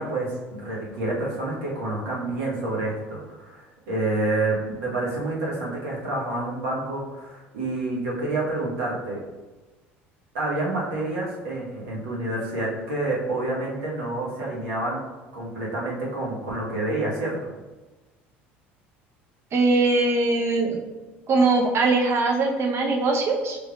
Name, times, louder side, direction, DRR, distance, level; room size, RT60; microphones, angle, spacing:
voice 1, 0.0-9.2 10.3-15.0 15.3-17.5, right 2 dB, 75° right, -4 dB, 1.2 m, -28 dB
voice 2, 19.5-20.8 21.3-23.6, right 3 dB, 45° right, 1 dB, 0.7 m, -21 dB
5.1 x 3.3 x 2.4 m, 1.2 s
hypercardioid pair, 70°, 6 cm